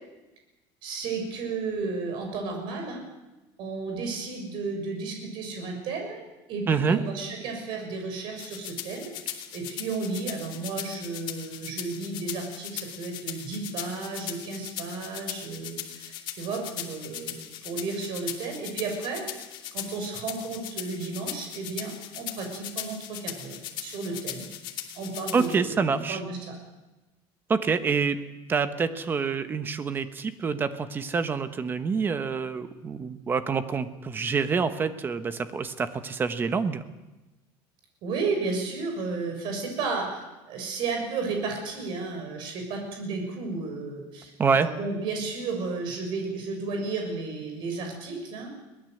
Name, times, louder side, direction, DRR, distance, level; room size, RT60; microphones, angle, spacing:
voice 1, 0.8-3.0 3.6-6.2 6.5-9.1 9.5-19.2 19.7-24.5 24.9-26.5 38.0-40.1 40.5-44.3 44.6-48.5, right 4 dB, 45° right, 3 dB, 6.7 m, -33 dB
voice 2, 6.7-7.0 25.3-26.2 27.5-28.2 28.5-36.8 44.4-44.7, right 5 dB, 20° right, 11 dB, 1.1 m, -26 dB
sound 1, 8.4-25.5, left 11 dB, 45° left, 2.7 m, -38 dB
23.0 x 19.0 x 7.9 m, 1.1 s
cardioid pair, 175°, 11 cm